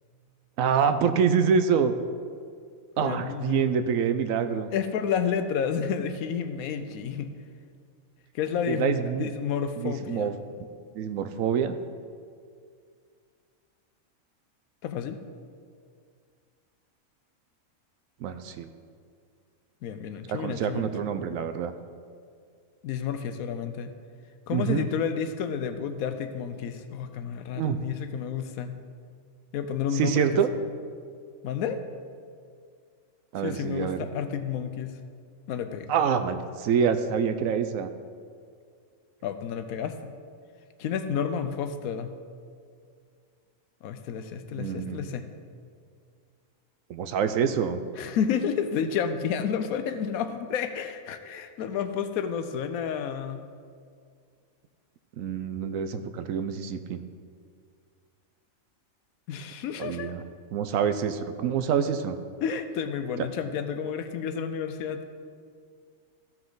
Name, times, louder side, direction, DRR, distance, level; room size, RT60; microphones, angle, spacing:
voice 1, 0.6-1.9 3.0-4.7 8.7-9.3 9.8-10.3 10.9-11.7 18.2-18.7 20.3-21.7 24.5-24.9 27.6-27.8 29.9-30.5 33.3-34.0 35.9-37.9 44.5-45.1 46.9-47.8 55.2-57.0 59.8-60.2 60.5-62.2, right 7 dB, 75° right, 9 dB, 1.0 m, -26 dB
voice 2, 3.0-3.7 4.7-7.3 8.3-10.3 14.8-15.2 19.8-20.9 22.8-23.9 24.5-28.8 29.5-30.3 31.4-31.8 33.4-35.0 35.5-35.9 39.2-40.1 40.8-42.1 43.8-45.2 48.0-53.4 59.3-60.1 62.4-65.0, left 7 dB, 90° left, 8 dB, 1.1 m, -30 dB
14.5 x 5.9 x 3.9 m, 2.1 s
omnidirectional pair, 1.5 m